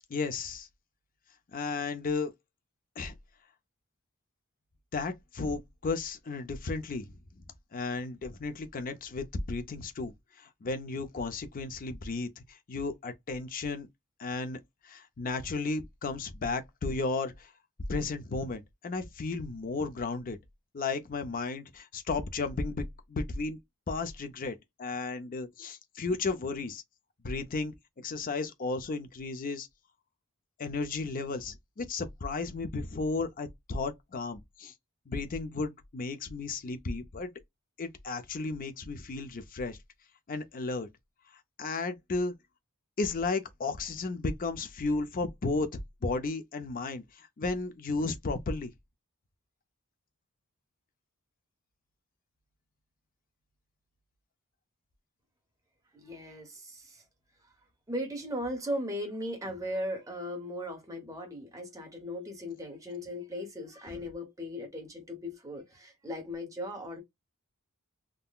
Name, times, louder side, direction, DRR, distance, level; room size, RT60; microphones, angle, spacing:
voice 1, 0.1-0.7 1.5-2.3 3.0-3.1 4.9-7.1 7.7-13.9 14.2-17.5 17.9-20.4 20.7-23.6 23.9-26.8 27.2-29.7 30.6-34.7 35.1-37.3 37.8-39.8 40.3-40.9 41.6-42.3 43.0-48.7, left 3 dB, 40° left, 0.5 m, -34 dB
voice 2, 55.9-57.0 57.9-67.0, equal, 15° right, 1.0 m, -37 dB
3.6 x 2.1 x 2.3 m
head